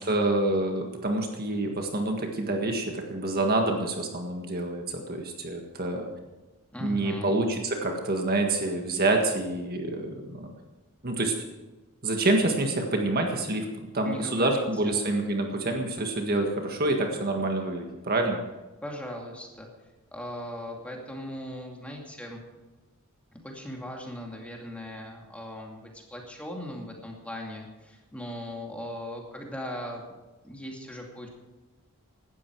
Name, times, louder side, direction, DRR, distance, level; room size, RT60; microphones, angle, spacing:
voice 1, 0.0-6.1 6.8-10.5 11.0-11.3 12.0-13.7 13.9-18.4, right 2 dB, 45° right, 3 dB, 1.7 m, -27 dB
voice 2, 6.7-7.3 14.0-14.9 18.8-19.7 20.1-22.4 23.4-30.2 30.4-31.3, equal, 5° left, 0 dB, 2.5 m, -39 dB
17.5 x 12.5 x 4.8 m, 1.1 s
head